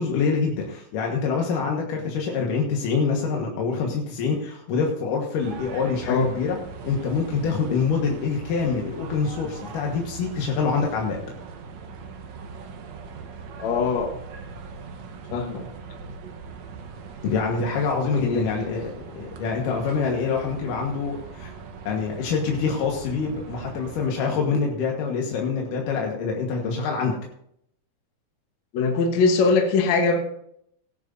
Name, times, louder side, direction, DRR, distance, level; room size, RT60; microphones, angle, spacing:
voice 1, 0.0-6.6 6.8-11.2 17.2-21.6 21.8-27.2, left 5 dB, 90° left, 0 dB, 3.0 m, -25 dB
sound 1, 5.4-24.1, right 5 dB, 65° right, 2.1 m, -40 dB
voice 2, 13.6-14.1 15.3-15.6 18.2-18.5 28.7-30.2, left 4 dB, 65° left, 3 dB, 2.4 m, -21 dB
17.5 x 10.5 x 2.6 m, 0.71 s
omnidirectional pair, 3.7 m